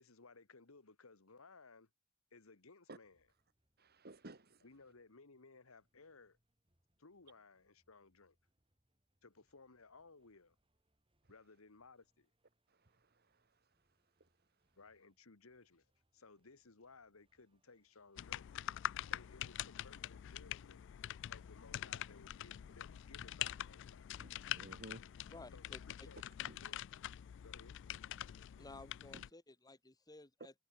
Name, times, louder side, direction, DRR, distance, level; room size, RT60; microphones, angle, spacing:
voice 1, 0.0-1.9 2.3-3.2 4.6-6.4 7.0-8.4 9.2-10.5 11.3-12.3 14.8-15.9 16.1-18.5 19.1-20.8 21.3-24.1 25.5-26.8 27.4-27.7, left 3 dB, 85° left, 1.6 m, -61 dB
sound 1, 3.0-22.4, right 1 dB, 25° right, 7.4 m, -85 dB
voice 2, 3.8-4.6 12.7-13.6 14.2-14.3 24.2-25.0 26.5-26.6 29.1-29.3, right 2 dB, 50° right, 2.3 m, -56 dB
sound 2, 18.2-29.3, left 12 dB, 60° left, 0.3 m, -45 dB
voice 3, 25.3-25.8 28.6-30.5, left 2 dB, 20° left, 1.7 m, -55 dB
head